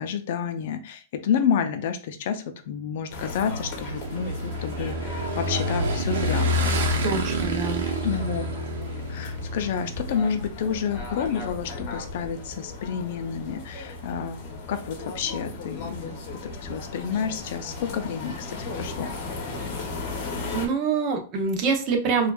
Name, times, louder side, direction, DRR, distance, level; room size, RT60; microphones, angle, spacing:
voice 1, 0.0-6.8 8.0-8.5 9.1-19.1, left 7 dB, 60° left, 8 dB, 0.5 m, -29 dB
sound 1, 3.1-20.7, left 3 dB, 40° left, 0.9 m, -37 dB
Motorcycle / Engine, 3.5-10.5, equal, 85° right, 0.8 m, -28 dB
voice 2, 7.0-7.9 20.5-22.3, right 5 dB, 35° right, 4 dB, 0.7 m, -25 dB
4.3 x 2.4 x 2.3 m, 0.37 s
supercardioid pair, 155°, 0 cm